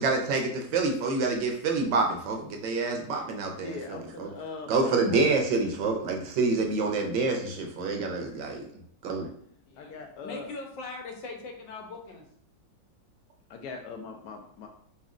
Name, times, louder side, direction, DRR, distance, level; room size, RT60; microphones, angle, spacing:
voice 1, 0.0-3.8 4.2-4.3 4.7-8.6 9.0-9.3, right 3 dB, 80° right, 2 dB, 1.4 m, -27 dB
voice 2, 3.5-5.4 9.8-10.5 13.5-14.7, left 4 dB, 70° left, 3 dB, 1.0 m, -41 dB
voice 3, 9.7-12.2, left 3 dB, 90° left, 2 dB, 1.5 m, -41 dB
4.1 x 4.1 x 2.5 m, 0.63 s
omnidirectional pair, 2.0 m